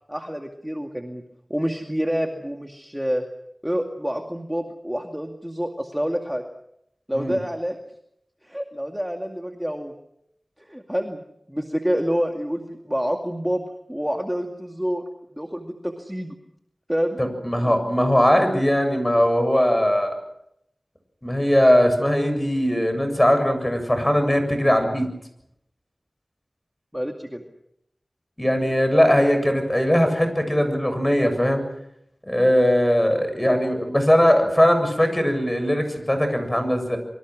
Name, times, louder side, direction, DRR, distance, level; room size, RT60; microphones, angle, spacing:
voice 1, 0.1-1.2 1.5-3.2 3.6-6.4 7.1-7.8 8.4-9.9 10.6-11.2 11.5-15.0 15.3-16.3 16.9-17.2 18.4-18.5 26.9-27.4, equal, 5° right, 3 dB, 2.3 m, -27 dB
voice 2, 17.2-20.2 21.2-25.1 28.4-31.6 32.3-37.0, equal, 15° left, 7 dB, 7.4 m, -20 dB
26.5 x 24.0 x 6.3 m, 0.77 s
wide cardioid pair, 55°, 0 cm